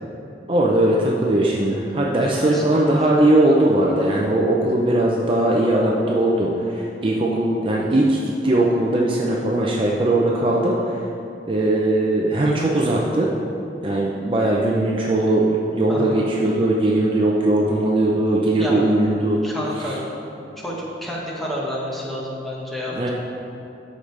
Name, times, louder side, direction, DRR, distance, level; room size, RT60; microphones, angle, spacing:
voice 1, 0.5-11.0 11.5-13.3 13.8-19.4 22.9-23.1, right 1 dB, 30° right, -3 dB, 0.6 m, -19 dB
voice 2, 2.2-3.1 15.9-16.2 18.6-18.8 19.4-20.0 20.6-23.1, equal, ahead, -5 dB, 1.3 m, -30 dB
13.0 x 5.1 x 3.3 m, 2.9 s
head